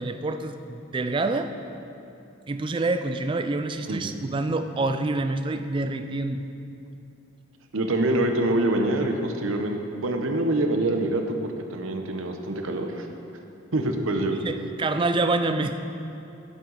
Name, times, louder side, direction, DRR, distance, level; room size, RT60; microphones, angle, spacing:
voice 1, 0.0-1.5 2.5-6.5 14.3-15.8, right 2 dB, 25° right, 8 dB, 0.3 m, -27 dB
voice 2, 7.7-13.1 13.7-14.3, right 1 dB, 80° right, 4 dB, 0.8 m, -25 dB
10.5 x 7.5 x 3.9 m, 2.8 s
head